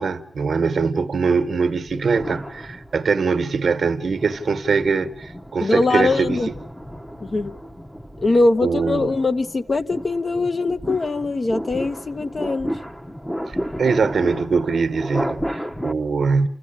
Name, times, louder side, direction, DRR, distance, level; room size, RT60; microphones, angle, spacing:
voice 1, 0.0-6.4 8.6-9.1 13.5-16.5, right 5 dB, 75° right, 1.1 m, -22 dB
sound 1, 1.9-3.3 3.8-15.9, equal, 10° left, 1.0 m, -33 dB
voice 2, 5.6-6.5 7.2-7.5 8.2-12.7, left 3 dB, 40° left, 1.1 m, -22 dB
29.0 x 15.0 x 8.7 m
wide cardioid pair, 130°, 0 cm